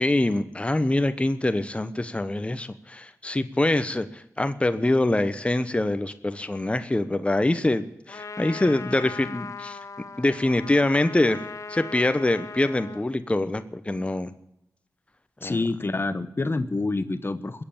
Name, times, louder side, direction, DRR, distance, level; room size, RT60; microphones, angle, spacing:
voice 1, 0.0-9.8 10.2-11.4 11.7-14.3 15.4-15.6, left 2 dB, 20° left, 11 dB, 1.0 m, -24 dB
Trumpet, 8.1-13.1, left 4 dB, 65° left, 0.8 m, -39 dB
voice 2, 15.4-17.6, left 3 dB, 40° left, 12 dB, 1.0 m, -27 dB
20.5 x 7.9 x 8.7 m, 0.83 s
cardioid pair, 50°, 6 cm